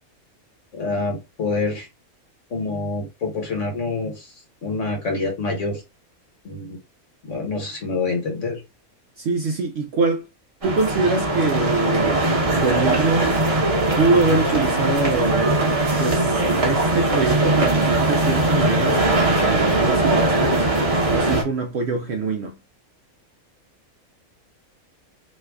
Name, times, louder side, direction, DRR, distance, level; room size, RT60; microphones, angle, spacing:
voice 1, 0.7-1.9 2.5-4.3 4.6-5.8 6.4-6.8 7.2-8.6, left 3 dB, 60° left, 1.4 m, -26 dB
voice 2, 9.2-10.2 10.6-13.4 14.0-15.7 16.0-20.7 21.1-22.6, right 3 dB, 65° right, 0.7 m, -24 dB
sound 1, 10.6-21.4, right 2 dB, 30° right, 0.9 m, -20 dB
3.0 x 2.3 x 3.4 m
omnidirectional pair, 1.5 m